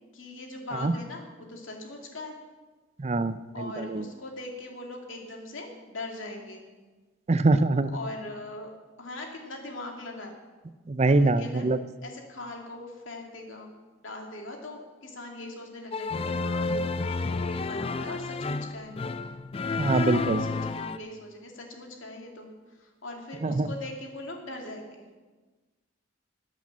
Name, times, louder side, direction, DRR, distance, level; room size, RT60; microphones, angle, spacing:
voice 1, 0.1-2.3 3.5-6.6 7.9-8.7 9.0-10.3 11.1-11.7 12.0-13.7 14.0-18.9 19.8-25.0, left 2 dB, 85° left, 1 dB, 2.5 m, -40 dB
voice 2, 3.0-4.0 7.3-8.0 10.9-11.8 19.8-20.4 23.4-23.7, right 2 dB, 35° right, 13 dB, 0.5 m, -24 dB
sound 1, 15.9-21.0, left 3 dB, 30° left, 0.4 m, -30 dB
13.5 x 8.5 x 7.3 m, 1.3 s
head